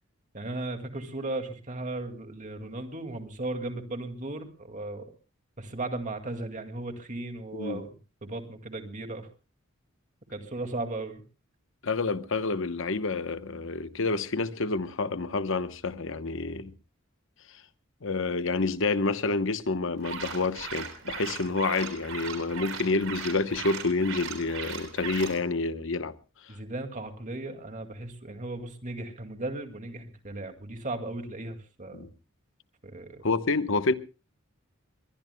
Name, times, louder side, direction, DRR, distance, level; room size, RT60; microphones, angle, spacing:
voice 1, 0.3-5.0 5.6-7.9 8.2-9.3 10.3-11.2 26.5-32.1 32.8-33.2, right 2 dB, 40° right, 2.2 m, -36 dB
voice 2, 11.8-16.7 18.0-26.1 31.9-32.1 33.2-33.9, left 3 dB, 65° left, 1.0 m, -28 dB
sound 1, 20.0-25.4, right 6 dB, 85° right, 3.8 m, -38 dB
22.0 x 21.5 x 2.2 m
head